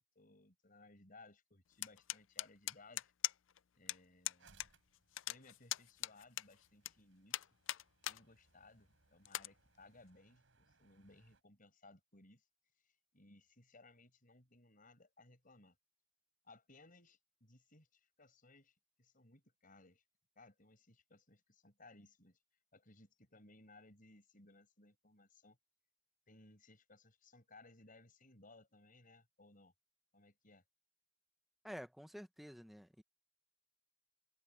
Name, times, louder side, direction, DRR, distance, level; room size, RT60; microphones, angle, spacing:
voice 1, 0.0-3.1 3.7-4.7 5.3-7.5 8.1-12.4 12.8-15.8 16.4-20.0 20.4-22.4 22.7-25.6 26.3-29.7 30.1-30.6, left 2 dB, 45° left, 5.6 m, -63 dB
sound 1, 1.8-3.6 3.9-4.0 4.2-4.7 4.9-6.9 7.3-8.2 8.6-8.7 9.2-9.5, left 15 dB, 75° left, 0.5 m, -40 dB
sound 2, 4.4-11.4, right 4 dB, 85° right, 3.9 m, -72 dB
voice 2, 31.6-33.0, equal, ahead, 1.1 m, -50 dB
head